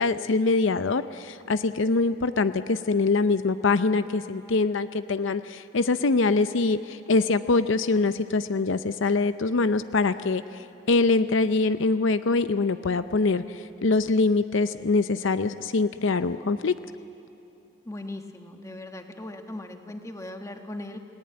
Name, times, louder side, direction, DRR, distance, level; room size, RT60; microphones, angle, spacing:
voice 1, 0.0-16.7, left 3 dB, 75° left, 12 dB, 0.6 m, -24 dB
voice 2, 17.8-21.0, left 1 dB, 15° left, 5 dB, 1.5 m, -38 dB
30.0 x 18.5 x 8.8 m, 2.8 s
head